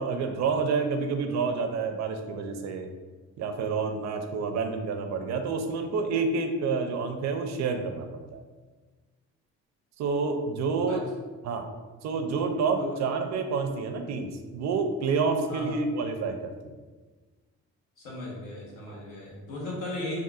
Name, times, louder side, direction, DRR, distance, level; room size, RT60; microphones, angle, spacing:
voice 1, 0.0-2.9 3.4-8.4 10.0-11.0 11.4-11.7 12.0-16.7 18.9-19.0, right 4 dB, 65° right, 6 dB, 0.4 m, -29 dB
voice 2, 15.5-15.8 18.0-20.2, left 1 dB, 90° left, -5 dB, 1.1 m, -36 dB
3.7 x 2.4 x 2.3 m, 1.3 s
cardioid pair, 90°, 30 cm